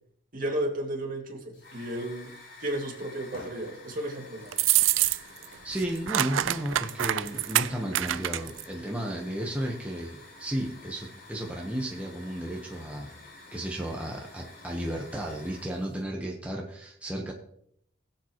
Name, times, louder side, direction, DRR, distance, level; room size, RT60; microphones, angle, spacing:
voice 1, 0.3-2.3 2.6-4.6, right 1 dB, 45° right, 0 dB, 2.5 m, -33 dB
Hiss / Fire, 1.5-16.0, left 2 dB, 70° left, 4.0 m, -50 dB
sound 1, 4.5-5.4 5.7-8.6, right 14 dB, 85° right, 0.4 m, -26 dB
voice 2, 5.6-13.1 13.5-17.3, right 1 dB, 5° right, -2 dB, 1.2 m, -33 dB
21.0 x 7.4 x 3.1 m, 0.70 s
head